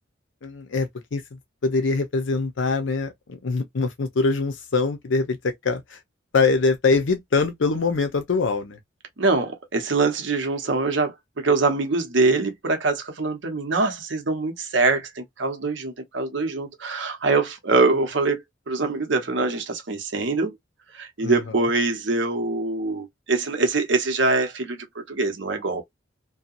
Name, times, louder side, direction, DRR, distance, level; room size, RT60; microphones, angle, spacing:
voice 1, 0.4-6.0 6.3-8.8 21.2-21.6, left 4 dB, 85° left, 0.6 m, -24 dB
voice 2, 9.2-20.6 20.9-25.8, right 3 dB, 75° right, 0.8 m, -24 dB
2.7 x 2.2 x 2.4 m
head